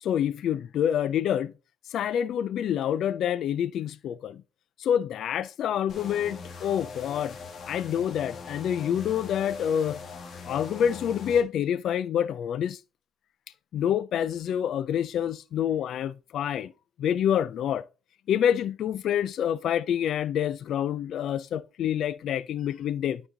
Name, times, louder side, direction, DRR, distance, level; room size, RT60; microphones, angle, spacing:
voice 1, 0.0-1.5 1.9-4.4 4.8-7.4 7.7-10.0 10.4-12.8 13.7-16.7 17.0-17.8 18.3-23.2, left 9 dB, 70° left, 0.4 m, -27 dB
sound 1, 5.9-11.4, left 4 dB, 55° left, 1.5 m, -41 dB
9.5 x 4.1 x 3.8 m
cardioid pair, 90°, 0 cm